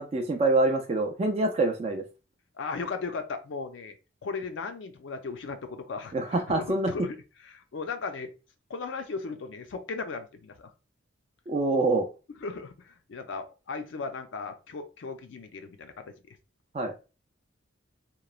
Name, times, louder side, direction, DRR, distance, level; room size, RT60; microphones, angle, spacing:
voice 1, 0.0-2.0 6.1-6.9 11.5-12.1 16.7-16.9, right 2 dB, 30° right, 4 dB, 0.3 m, -25 dB
voice 2, 2.6-4.0 4.2-7.2 7.4-8.3 8.7-10.7 12.4-16.4, left 4 dB, 70° left, 7 dB, 0.4 m, -37 dB
3.0 x 2.0 x 2.3 m, 0.31 s
head